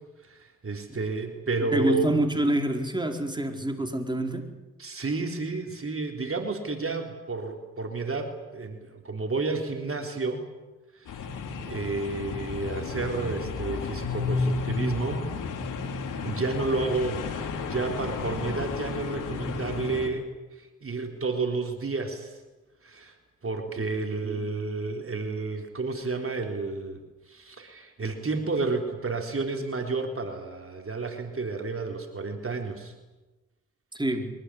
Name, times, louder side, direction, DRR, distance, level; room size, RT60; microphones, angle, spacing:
voice 1, 0.2-2.1 4.8-10.4 10.9-15.2 16.2-22.4 22.8-23.1 23.4-27.0 27.3-32.9, right 3 dB, 45° right, 3 dB, 3.9 m, -31 dB
voice 2, 1.7-4.4 24.2-24.4 33.9-34.3, right 1 dB, 15° right, 4 dB, 4.5 m, -26 dB
sound 1, 11.1-20.1, left 4 dB, 90° left, 3.5 m, -32 dB
24.0 x 19.5 x 10.0 m, 1.1 s
cardioid pair, 55°, 31 cm